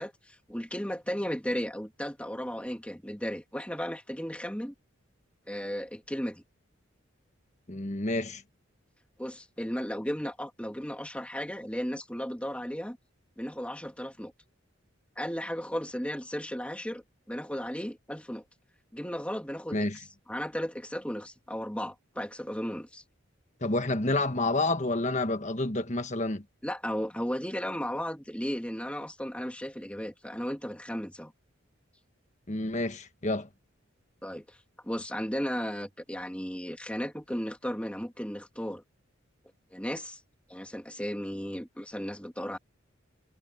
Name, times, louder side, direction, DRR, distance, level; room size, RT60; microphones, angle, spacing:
voice 1, 0.0-4.7 5.5-6.4 9.2-13.0 13.4-14.3 15.2-18.4 18.9-23.0 26.6-31.3 34.2-34.6 34.8-38.8 39.7-40.2 40.5-42.6, equal, 5° left, 2.9 m, -35 dB
voice 2, 7.7-8.4 19.7-20.0 23.6-26.4 32.5-33.5, left 2 dB, 35° left, 1.4 m, -29 dB
head